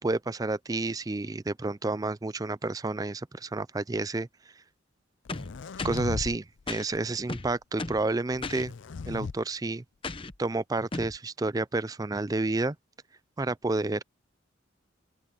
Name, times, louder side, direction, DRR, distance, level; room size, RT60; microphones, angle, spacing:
voice 1, 0.0-4.3 5.8-8.7 9.1-9.8 10.4-12.8 13.4-14.0, right 2 dB, 20° right, 0.4 m, -30 dB
sound 1, 5.3-6.4 6.7-7.1 8.3-9.3, left 4 dB, 65° left, 0.5 m, -37 dB
sound 2, 5.3-6.1 6.7-6.9 7.3-8.1 8.4-8.7 10.0-10.4 10.9-11.2, left 3 dB, 25° left, 0.8 m, -36 dB
open air
head